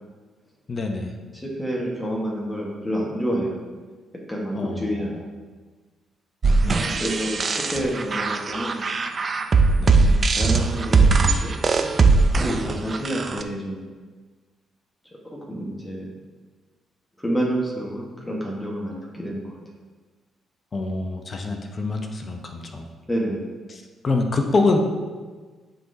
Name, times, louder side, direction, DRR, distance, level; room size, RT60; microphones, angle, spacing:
voice 1, 0.7-1.1 4.5-5.2 6.6-6.9 9.8-10.0 12.6-12.8 20.7-22.9 23.7-24.8, left 3 dB, 40° left, 3 dB, 0.7 m, -26 dB
voice 2, 1.3-3.6 4.3-5.3 6.7-8.8 9.9-11.6 12.4-13.8 15.5-16.1 17.2-19.6 23.1-23.5, equal, 15° left, -3 dB, 1.3 m, -28 dB
sound 1, 6.4-13.4, right 4 dB, 40° right, 0.4 m, -20 dB
11.0 x 3.8 x 2.7 m, 1.4 s
cardioid pair, 90°, 0 cm